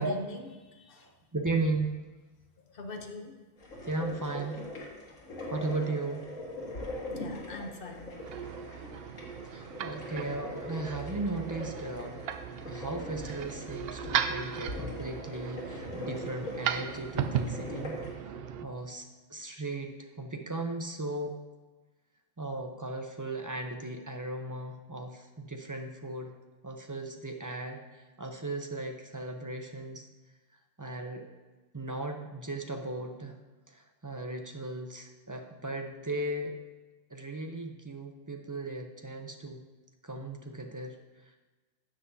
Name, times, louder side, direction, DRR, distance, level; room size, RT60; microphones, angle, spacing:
voice 1, 0.0-1.1 2.7-3.4 7.1-8.2, left 2 dB, 50° left, 4 dB, 1.0 m, -42 dB
voice 2, 1.0-2.0 3.8-4.6 5.5-6.2 7.6-7.7 9.5-12.2 12.7-18.0 18.6-21.3 22.4-26.3 26.6-30.1 30.8-31.3 31.7-33.3 33.7-36.5 37.1-39.6 40.0-41.0, right 2 dB, 25° right, 3 dB, 0.5 m, -36 dB
sound 1, 3.6-18.1, left 1 dB, 90° left, 2.2 m, -42 dB
sound 2, 8.1-18.6, right 8 dB, 65° right, 0.7 m, -37 dB
12.5 x 7.7 x 2.8 m, 1.2 s
omnidirectional pair, 1.3 m